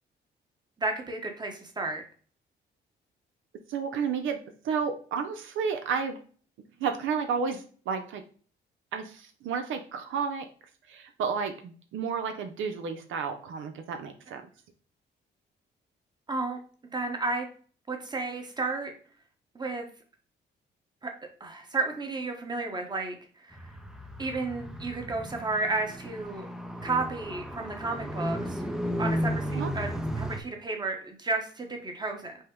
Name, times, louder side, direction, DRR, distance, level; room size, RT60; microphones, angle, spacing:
voice 1, 0.8-2.0 16.3-16.6 16.9-17.5 17.9-18.9 19.5-19.9 21.0-21.1 21.4-23.2 23.4-23.6 24.2-26.5 26.8-28.6 29.0-32.4, right 3 dB, 20° right, 3 dB, 1.0 m, -32 dB
voice 2, 3.7-4.4 4.6-6.2 6.8-8.2 8.9-10.4 10.9-14.4 29.5-29.7, right 6 dB, 80° right, 6 dB, 0.6 m, -31 dB
Car, 23.5-30.4, equal, 5° right, 0.5 m, -34 dB
5.3 x 2.1 x 3.6 m, 0.43 s
cardioid pair, 90°, 20 cm